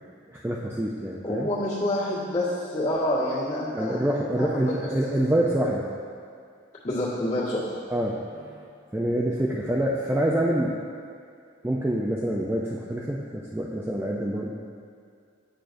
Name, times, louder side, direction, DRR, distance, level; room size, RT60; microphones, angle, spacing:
voice 1, 0.3-1.5 3.7-5.8 7.9-8.6 8.9-10.8 11.6-14.5, right 1 dB, 10° right, -4 dB, 0.4 m, -26 dB
voice 2, 1.2-4.0 4.4-4.9 6.8-7.6, left 1 dB, 40° left, -11 dB, 1.7 m, -27 dB
8.8 x 6.3 x 2.6 m, 2.3 s
head